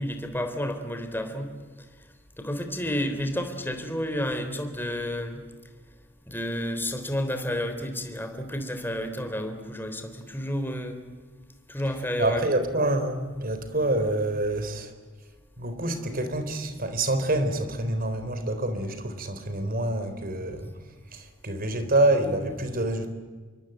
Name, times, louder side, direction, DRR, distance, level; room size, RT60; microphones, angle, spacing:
voice 1, 0.0-1.5 2.4-5.4 6.3-11.0 11.7-12.5, equal, 10° left, 3.6 m, -30 dB
voice 2, 12.2-14.9 15.6-20.7 21.1-23.1, right 1 dB, 45° right, 3.8 m, -27 dB
27.5 x 24.0 x 9.0 m
head